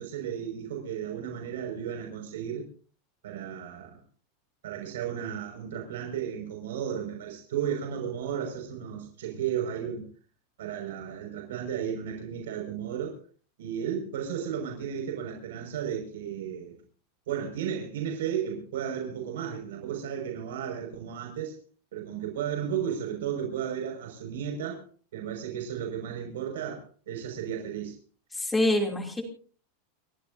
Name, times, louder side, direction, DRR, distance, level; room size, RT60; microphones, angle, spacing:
voice 1, 0.0-2.7 3.2-4.0 4.6-10.1 10.6-13.2 13.6-16.7 17.3-21.6 21.9-24.8 25.1-27.9, right 8 dB, 85° right, 5.6 m, -34 dB
voice 2, 28.3-29.2, left 1 dB, 5° left, 2.9 m, -25 dB
30.0 x 14.5 x 2.7 m
supercardioid pair, 180°, 0 cm